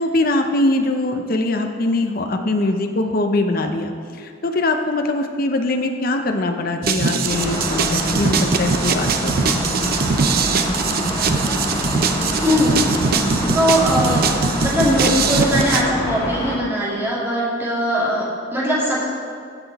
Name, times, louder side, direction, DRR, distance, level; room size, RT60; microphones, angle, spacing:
voice 1, 0.0-9.6, left 2 dB, 50° left, 5 dB, 0.7 m, -22 dB
sound 1, 6.8-15.8, right 5 dB, 50° right, 0.6 m, -22 dB
sound 2, 7.2-16.6, equal, 25° left, 2.4 m, -25 dB
voice 2, 12.4-12.8 13.5-14.3 14.6-19.1, equal, 15° right, -7 dB, 2.5 m, -20 dB
16.0 x 6.0 x 4.1 m, 2.2 s
head